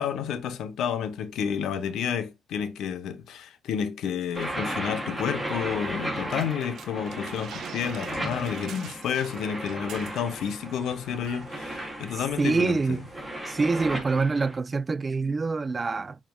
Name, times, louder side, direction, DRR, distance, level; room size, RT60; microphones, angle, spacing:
voice 1, 0.0-13.1, left 8 dB, 80° left, 1.0 m, -30 dB
sound 1, 4.3-14.6, right 1 dB, ahead, 3.4 m, -35 dB
sound 2, 6.3-10.5 10.8-11.0 11.3-11.7, right 9 dB, 70° right, 1.1 m, -45 dB
voice 2, 12.4-13.0 13.5-16.2, right 4 dB, 30° right, 0.4 m, -25 dB
7.1 x 5.8 x 2.3 m
cardioid pair, 90°, 0 cm